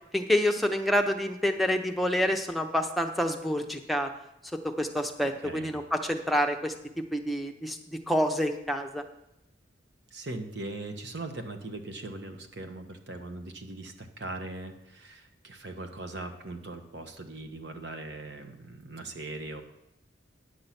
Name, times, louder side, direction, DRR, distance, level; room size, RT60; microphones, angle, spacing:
voice 1, 0.1-4.1 4.6-6.7 7.1-7.8 8.1-9.0, equal, ahead, 3 dB, 0.7 m, -27 dB
voice 2, 5.2-5.7 10.1-19.6, right 2 dB, 65° right, 6 dB, 1.1 m, -40 dB
9.8 x 6.7 x 5.8 m, 0.89 s
head